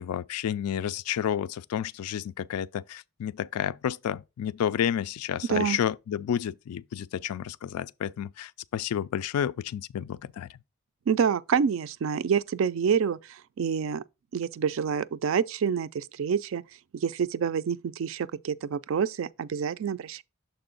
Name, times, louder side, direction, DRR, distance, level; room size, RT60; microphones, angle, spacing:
voice 1, 0.0-10.6, left 9 dB, 85° left, 0.3 m, -31 dB
voice 2, 11.1-14.0 14.3-16.6 16.9-20.2, right 7 dB, 60° right, 0.3 m, -27 dB
6.8 x 4.3 x 3.8 m
head